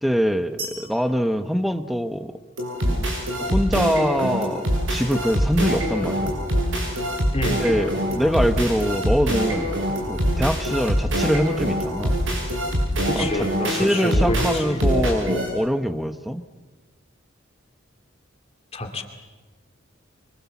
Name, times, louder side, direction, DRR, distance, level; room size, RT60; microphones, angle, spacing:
voice 1, 0.0-2.4 2.8-3.0 3.4-6.3 7.6-9.7 10.1-12.1 13.1-16.4, equal, ahead, 10 dB, 0.9 m, -24 dB
sound 1, 0.6-2.5, right 2 dB, 50° right, 4.2 m, -39 dB
sound 2, 2.6-15.5, equal, 75° right, 5.9 m, -24 dB
sound 3, 5.0-13.5, equal, 20° right, 5.0 m, -35 dB
voice 2, 13.1-14.8 18.7-19.0, left 1 dB, 30° left, 4 dB, 2.4 m, -27 dB
26.0 x 24.5 x 7.2 m, 1.3 s
head